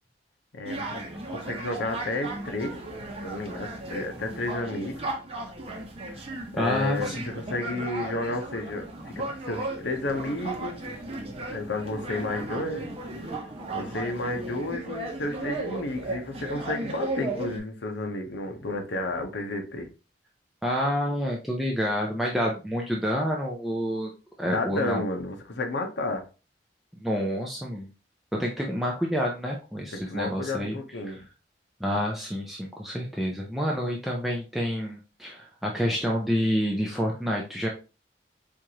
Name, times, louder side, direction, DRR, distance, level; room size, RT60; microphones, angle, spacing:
voice 1, 0.5-0.8 1.3-2.8 3.2-5.1 6.1-6.2 6.5-10.8 11.5-12.9 13.7-19.9 24.4-26.2 29.9-31.2, left 2 dB, 85° left, 4 dB, 0.8 m, -32 dB
sound 1, 0.6-17.6, right 2 dB, 35° right, 0.8 m, -35 dB
voice 2, 6.6-7.3 20.6-24.1 24.4-25.0 27.0-27.9 28.3-30.8 31.1-31.2 31.8-37.7, equal, ahead, -2 dB, 0.5 m, -28 dB
4.5 x 2.5 x 2.8 m, 0.32 s
head